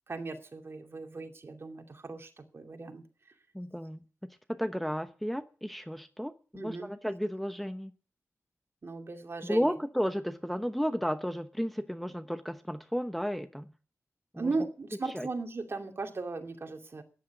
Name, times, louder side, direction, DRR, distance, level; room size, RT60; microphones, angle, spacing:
voice 1, 0.1-3.0 6.5-6.9 8.8-9.8 14.3-17.0, right 3 dB, 50° right, 4 dB, 2.6 m, -37 dB
voice 2, 3.5-4.0 4.5-7.9 9.4-13.7 14.3-14.5 15.1-15.3, equal, ahead, 8 dB, 0.9 m, -33 dB
15.0 x 10.5 x 7.2 m, 0.39 s
wide cardioid pair, 115°, 5 cm